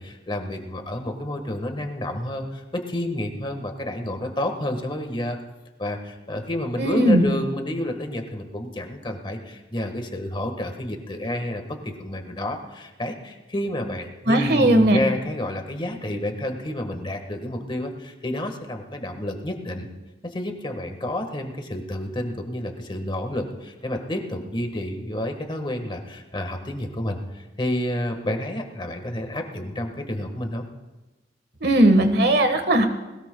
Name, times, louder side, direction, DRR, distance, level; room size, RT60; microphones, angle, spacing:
voice 1, 0.0-5.4 5.8-19.9 20.2-30.6, left 1 dB, 30° left, 5 dB, 1.5 m, -30 dB
voice 2, 6.8-7.3 14.3-15.0 31.6-32.9, right 1 dB, 65° right, 6 dB, 1.4 m, -18 dB
21.0 x 18.5 x 2.3 m, 1.1 s
head